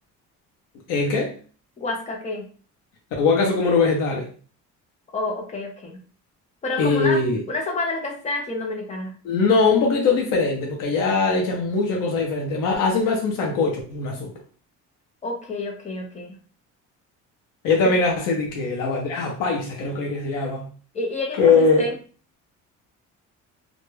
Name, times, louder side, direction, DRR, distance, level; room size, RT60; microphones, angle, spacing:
voice 1, 0.9-1.3 3.2-4.3 6.8-7.4 9.2-14.3 17.6-20.7 21.3-21.9, left 4 dB, 80° left, 0.7 m, -21 dB
voice 2, 1.8-2.5 5.1-6.0 6.6-7.2 7.5-9.1 15.2-16.4 17.8-17.9 20.9-21.9, left 2 dB, 25° left, 0.4 m, -29 dB
2.2 x 2.0 x 3.0 m
cardioid pair, 160°, 31 cm